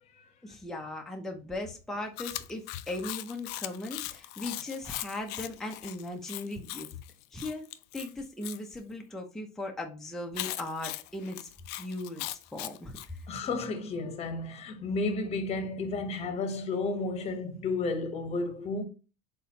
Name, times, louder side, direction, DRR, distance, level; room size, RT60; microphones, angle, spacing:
voice 1, 0.4-6.9 7.3-7.7 7.9-11.5 11.8-13.3, left 2 dB, ahead, 0.6 m, -38 dB
Chewing mastication, 2.2-8.6 10.3-13.1, left 16 dB, 55° left, 0.4 m, -39 dB
voice 2, 13.3-18.8, left 3 dB, 30° left, 1.0 m, -32 dB
4.1 x 3.8 x 2.7 m
supercardioid pair, 105°, 20 cm